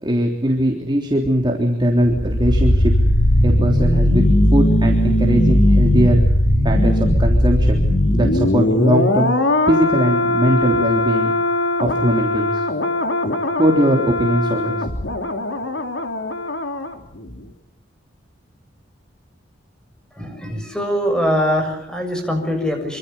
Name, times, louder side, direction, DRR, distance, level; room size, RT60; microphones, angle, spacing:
voice 1, 0.0-2.9 3.4-4.2 4.5-6.2 6.6-7.8 8.1-9.3 9.6-11.3 11.8-12.6 13.6-14.9, equal, 25° right, 1 dB, 3.4 m, -20 dB
sound 1, 2.0-16.9 17.2-17.4, left 1 dB, 75° left, 3.3 m, -18 dB
voice 2, 20.2-23.0, equal, 5° left, 4 dB, 6.8 m, -22 dB
26.5 x 26.0 x 7.1 m, 0.74 s
head